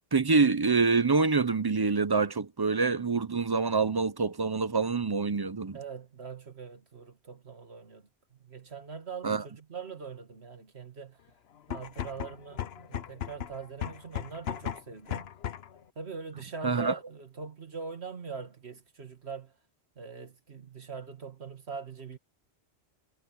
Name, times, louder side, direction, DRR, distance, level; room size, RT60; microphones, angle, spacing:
voice 1, 0.1-5.8 9.2-9.4 16.6-16.9, right 4 dB, 25° right, 0.5 m, -26 dB
voice 2, 5.7-11.2 11.7-15.3 16.0-19.6 20.0-22.2, right 5 dB, 70° right, 2.3 m, -42 dB
sound 1, 11.6-15.8, left 10 dB, 65° left, 1.0 m, -37 dB
omnidirectional pair, 1.1 m